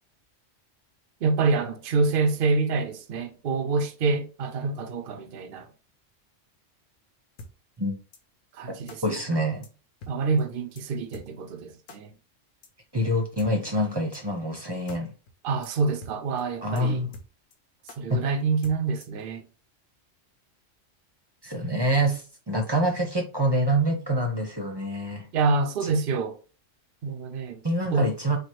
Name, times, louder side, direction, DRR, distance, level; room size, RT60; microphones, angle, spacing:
voice 1, 1.2-5.7 8.5-9.0 10.1-12.1 15.4-17.1 18.0-19.4 25.3-26.4 27.0-27.6 27.9-28.1, right 4 dB, 55° right, 0.8 m, -26 dB
sound 1, 7.4-7.5 8.1-8.2 8.9-9.0 9.6-9.7 10.0-10.1 10.4-10.5 10.8-10.9 11.1-11.3 11.9-12.0 12.6-12.7 13.4-13.5 14.1-14.2 14.5-14.6 14.9-15.0 15.3-15.4 15.6-15.7 16.0-16.1 16.4-16.5 16.8-16.9 17.1-17.6 17.9-18.0 18.6-19.2, left 2 dB, 85° left, 1.2 m, -44 dB
voice 2, 9.0-9.7 12.9-15.1 16.6-17.1 18.1-18.2 21.4-25.3 27.6-28.4, right 1 dB, 20° right, 0.8 m, -26 dB
4.6 x 2.3 x 4.5 m
omnidirectional pair, 1.3 m